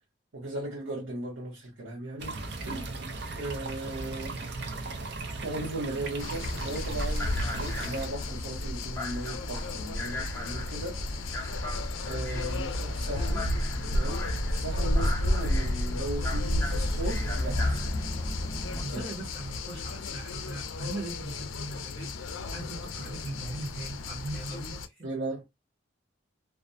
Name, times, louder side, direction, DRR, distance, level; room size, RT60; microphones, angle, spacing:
voice 1, 0.3-2.4 2.6-4.4 5.4-11.5 12.1-13.5 13.9-18.0 18.9-19.0 25.0-25.4, right 2 dB, 85° right, 0.9 m, -37 dB
sound 1, 2.2-8.1, right 3 dB, 55° right, 0.5 m, -37 dB
sound 2, 6.2-24.9, left 1 dB, 85° left, 0.4 m, -33 dB
sound 3, 6.4-18.8, left 1 dB, 15° left, 0.5 m, -35 dB
voice 2, 18.8-25.1, right 1 dB, 25° right, 0.9 m, -39 dB
2.4 x 2.1 x 2.6 m
head